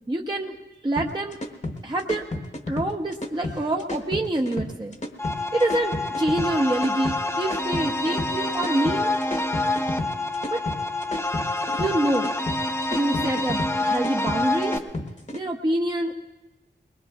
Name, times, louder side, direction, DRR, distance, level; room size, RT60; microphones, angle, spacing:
voice 1, 0.1-0.5 0.8-1.4 1.8-2.2 2.7-4.9 5.5-9.1 10.5-10.6 11.8-12.3 12.9-14.8 15.3-16.1, right 1 dB, 25° right, 1 dB, 0.7 m, -26 dB
sound 1, 1.0-15.4, left 2 dB, 40° left, 1.1 m, -32 dB
sound 2, 5.2-14.8, left 2 dB, 15° left, 0.7 m, -27 dB
21.5 x 21.0 x 2.4 m, 1.1 s
wide cardioid pair, 70°, 19 cm